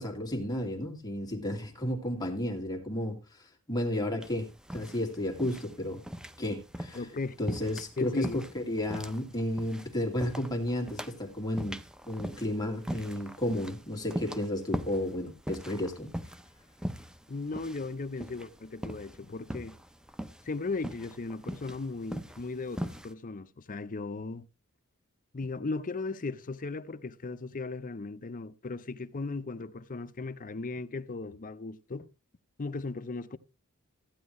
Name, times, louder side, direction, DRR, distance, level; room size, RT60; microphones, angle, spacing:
voice 1, 0.0-3.2 3.7-4.5 4.7-6.0 6.4-7.0 7.4-11.8 12.1-16.1, left 1 dB, 20° left, 2.4 m, -32 dB
sound 1, 4.2-23.1, equal, 5° right, 0.6 m, -41 dB
voice 2, 6.9-7.6 8.0-8.4 17.3-19.8 20.4-24.5 25.3-32.1 32.6-33.4, left 3 dB, 40° left, 0.6 m, -37 dB
15.0 x 9.4 x 3.1 m
head